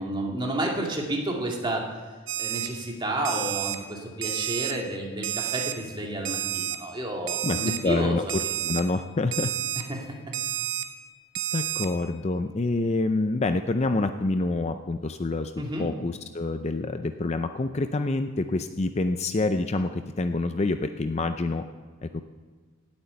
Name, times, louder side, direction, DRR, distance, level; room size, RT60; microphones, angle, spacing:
voice 1, 0.0-1.8 2.4-8.2 8.4-8.5 9.8-10.2 15.6-15.9, right 1 dB, 20° right, -1 dB, 2.2 m, -31 dB
Alarm, 2.3-2.7 3.2-3.8 4.2-4.7 5.2-5.7 6.2-6.8 7.3-7.8 8.3-8.8 9.3-9.8 10.3-10.8 11.3-11.9, right 12 dB, 55° right, 1.1 m, -30 dB
voice 2, 7.8-9.5 11.5-15.5 15.8-21.6 22.0-22.2, left 2 dB, 30° left, 9 dB, 0.5 m, -27 dB
18.0 x 8.8 x 6.9 m, 1.5 s
head